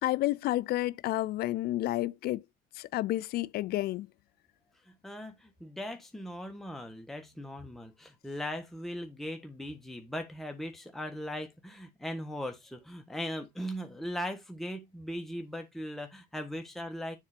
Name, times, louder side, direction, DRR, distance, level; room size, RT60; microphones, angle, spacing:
voice 1, 0.0-2.4 2.7-4.1, left 16 dB, 70° left, 0.4 m, -30 dB
voice 2, 4.9-17.2, equal, ahead, 1.3 m, -39 dB
7.4 x 3.6 x 5.0 m
cardioid pair, 110°, 17 cm